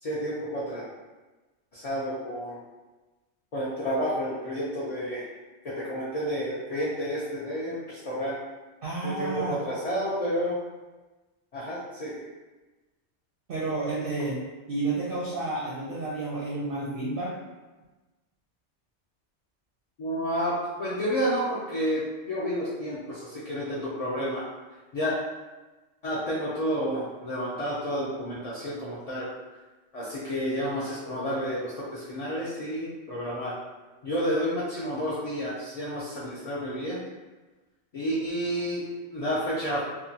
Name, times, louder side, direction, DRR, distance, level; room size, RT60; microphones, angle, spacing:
voice 1, 0.0-0.8 1.7-2.6 3.5-5.2 5.6-8.4 9.0-10.6 11.5-12.2 20.0-24.4 24.9-25.1 26.0-29.3 29.9-33.5 34.0-37.0 37.9-39.8, equal, 55° left, -9 dB, 0.4 m, -30 dB
voice 2, 8.8-9.6 13.5-17.3, right 2 dB, 60° right, -6 dB, 0.6 m, -31 dB
2.7 x 2.2 x 2.6 m, 1.2 s
omnidirectional pair, 1.3 m